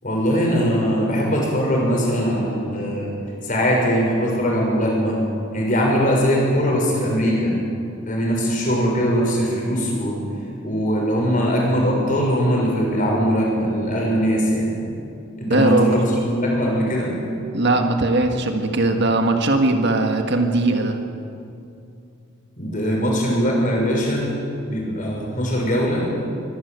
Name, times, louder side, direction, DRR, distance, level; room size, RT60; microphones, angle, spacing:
voice 1, 0.0-3.1 3.4-5.2 5.5-7.5 8.1-10.2 10.6-14.7 15.4-17.1 22.6-24.3 24.6-26.1, equal, 40° left, -2 dB, 6.3 m, -21 dB
voice 2, 15.5-16.0 17.5-21.0, right 2 dB, 55° right, 4 dB, 1.7 m, -19 dB
24.0 x 15.5 x 8.3 m, 2.5 s
head